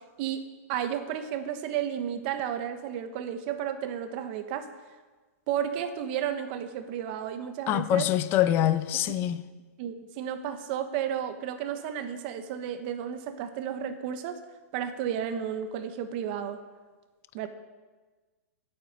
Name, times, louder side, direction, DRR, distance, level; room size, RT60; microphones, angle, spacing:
voice 1, 0.7-4.7 5.5-8.1 8.9-9.1 9.8-14.4 14.7-16.6 17.3-17.5, right 9 dB, 40° right, 1.2 m, -32 dB
voice 2, 7.7-9.4, left 12 dB, 25° left, 0.5 m, -24 dB
8.7 x 8.5 x 9.0 m
hypercardioid pair, 150°, 9 cm